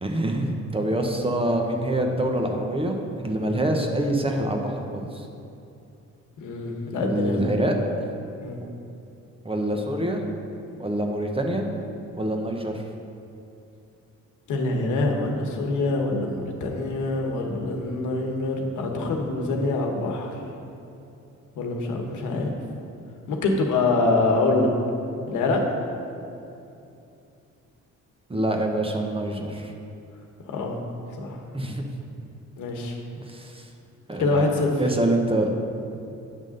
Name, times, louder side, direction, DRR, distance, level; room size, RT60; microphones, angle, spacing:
voice 1, 0.0-5.2 7.0-7.7 8.6-8.7 9.4-10.2 10.8-11.6 12.1-12.8 28.3-29.7 31.5-31.8 33.3-33.7 34.1-34.5 34.8-35.5, right 1 dB, 20° right, 2 dB, 0.9 m, -26 dB
voice 2, 6.4-7.4 8.4-8.6 14.5-20.4 21.5-22.5 23.3-24.7 25.3-25.6 30.5-30.8 31.1-31.4 32.6-33.0 34.2-34.7, left 3 dB, 80° left, 1 dB, 1.2 m, -25 dB
9.3 x 3.6 x 6.5 m, 2.7 s
cardioid pair, 90°, 30 cm